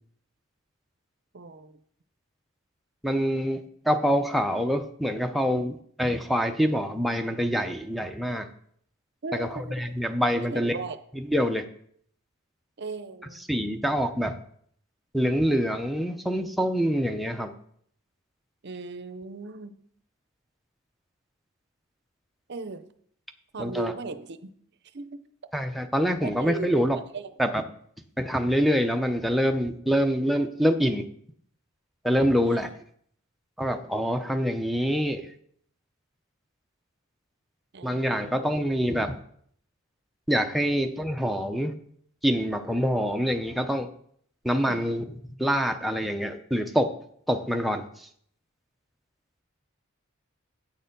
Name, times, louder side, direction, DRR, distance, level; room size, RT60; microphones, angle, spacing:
voice 1, 1.3-1.8 9.2-10.0 10.3-11.0 12.8-13.4 18.6-19.7 22.5-22.9 23.5-24.5 24.9-25.2 26.2-27.3 32.4-32.8 37.7-38.6 44.6-45.2, right 3 dB, 50° right, 0.6 m, -37 dB
voice 2, 3.0-8.5 9.3-10.8 11.1-11.6 13.4-14.3 15.1-17.5 23.6-23.9 25.5-27.0 27.4-27.6 28.2-31.0 32.0-32.7 33.6-35.3 37.8-39.1 40.3-41.7 42.2-43.9 44.4-45.0 45.4-46.9 47.3-48.1, equal, ahead, 0.6 m, -25 dB
8.5 x 6.7 x 5.3 m
head